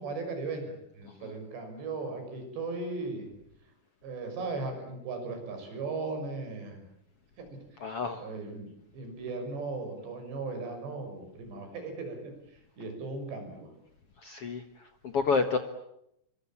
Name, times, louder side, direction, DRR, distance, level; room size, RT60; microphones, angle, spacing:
voice 1, 0.0-3.3 4.0-6.9 7.4-7.8 8.2-12.3 12.8-13.7, right 3 dB, 85° right, 6 dB, 8.2 m, -37 dB
voice 2, 7.8-8.2 14.2-15.6, left 4 dB, 75° left, 8 dB, 1.3 m, -30 dB
27.5 x 23.5 x 8.7 m, 0.79 s
omnidirectional pair, 4.9 m